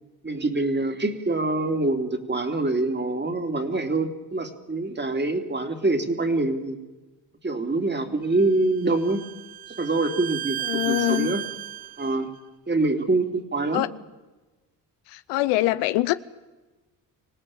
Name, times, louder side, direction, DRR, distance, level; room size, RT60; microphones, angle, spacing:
voice 1, 0.2-6.8 7.4-9.2 9.7-11.4 12.0-12.3 12.7-13.8, right 2 dB, 25° right, 3.1 m, -25 dB
Bowed string instrument, 8.4-12.2, right 12 dB, 60° right, 0.8 m, -34 dB
voice 2, 10.6-11.4 13.7-13.9 15.1-16.1, left 17 dB, 85° left, 0.8 m, -24 dB
25.5 x 17.0 x 8.8 m
supercardioid pair, 55°, 42 cm